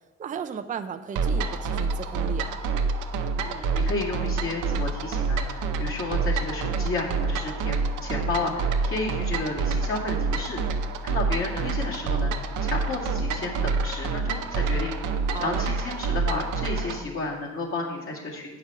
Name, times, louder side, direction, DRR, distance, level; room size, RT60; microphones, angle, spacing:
voice 1, 0.2-2.5 6.7-6.9 14.7-15.0 15.2-15.6, right 7 dB, 25° right, 9 dB, 0.4 m, -35 dB
sound 1, 1.2-17.0, right 4 dB, 85° right, 0.7 m, -27 dB
voice 2, 3.4-12.3 12.6-14.9 15.4-18.6, left 2 dB, 45° left, -3 dB, 2.2 m, -32 dB
7.7 x 5.9 x 5.6 m, 1.3 s
cardioid pair, 90°, 30 cm